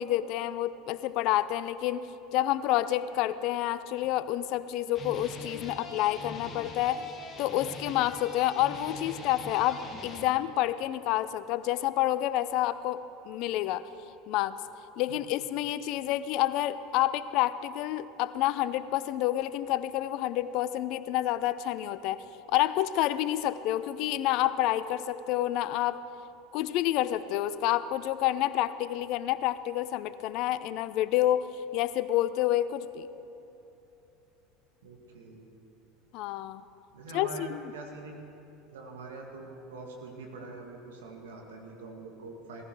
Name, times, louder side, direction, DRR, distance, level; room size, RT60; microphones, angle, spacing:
voice 1, 0.0-2.1 2.3-7.0 7.4-13.9 14.3-14.6 15.0-26.0 26.5-33.1 36.1-36.6 37.1-37.6, left 13 dB, 55° left, 14 dB, 0.5 m, -29 dB
sound 1, 4.0-4.6 4.9-10.2, left 3 dB, 30° left, 2.0 m, -43 dB
voice 2, 34.8-35.5 36.9-38.2 38.7-42.6, right 3 dB, 75° right, 2 dB, 1.9 m, -44 dB
17.5 x 15.0 x 4.7 m, 2.9 s
figure-of-eight pair, 75°, 0 cm